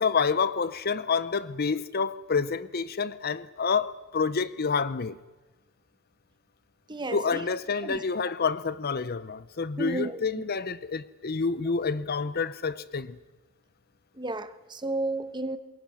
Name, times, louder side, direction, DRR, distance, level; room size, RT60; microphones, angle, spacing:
voice 1, 0.0-5.2 7.1-13.2, left 5 dB, 45° left, 0.7 m, -28 dB
voice 2, 6.9-7.4 7.8-8.0 9.8-10.4 14.2-15.6, right 2 dB, 20° right, 1.2 m, -33 dB
27.5 x 22.0 x 6.3 m
head